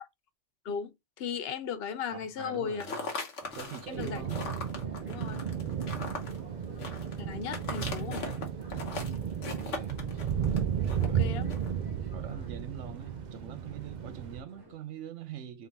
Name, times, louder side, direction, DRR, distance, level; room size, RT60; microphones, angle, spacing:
voice 1, 0.6-2.8 3.9-4.2 5.1-5.5 7.2-8.3 11.0-11.5, left 7 dB, 65° left, 0.8 m, -36 dB
voice 2, 2.1-3.0 3.5-4.4 5.9-6.5 8.8-10.0 10.8-11.4 12.1-15.7, right 9 dB, 90° right, 0.9 m, -44 dB
sound 1, 2.7-11.8, left 3 dB, 85° left, 1.3 m, -39 dB
sound 2, 3.4-14.7, equal, 20° right, 1.3 m, -52 dB
sound 3, 3.9-14.4, right 8 dB, 55° right, 0.5 m, -34 dB
3.7 x 3.5 x 2.8 m
omnidirectional pair, 1.2 m